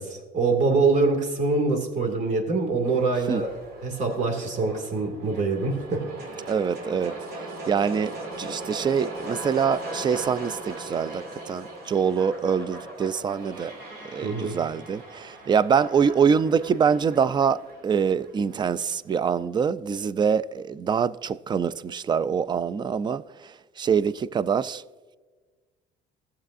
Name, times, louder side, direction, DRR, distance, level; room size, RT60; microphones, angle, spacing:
voice 1, 0.0-3.5 3.8-6.5 14.2-14.6, right 3 dB, 45° right, 2.1 m, -25 dB
sound 1, 2.8-18.9, right 2 dB, 70° right, 2.4 m, -39 dB
voice 2, 6.5-13.7 14.0-24.8, right 6 dB, 25° right, 0.3 m, -25 dB
15.5 x 7.1 x 2.5 m
cardioid pair, 110°, 17 cm